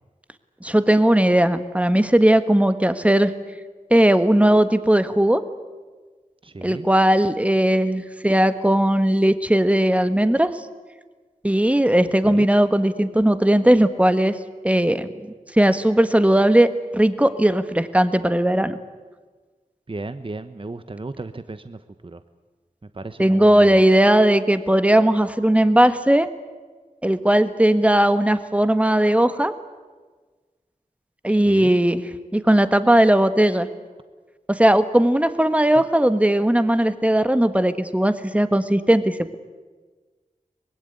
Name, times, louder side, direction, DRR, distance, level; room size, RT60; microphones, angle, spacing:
voice 1, 0.6-3.3 3.9-5.4 6.6-10.5 11.4-14.4 14.6-18.8 23.2-26.3 27.0-29.5 31.2-32.0 32.3-33.7 34.5-39.4, right 1 dB, 10° right, 10 dB, 1.5 m, -18 dB
voice 2, 6.4-6.9 12.2-12.5 19.9-22.2 23.0-23.8 31.5-31.8, right 2 dB, 40° right, 11 dB, 1.0 m, -34 dB
24.5 x 21.0 x 9.7 m, 1.3 s
wide cardioid pair, 70°, 14 cm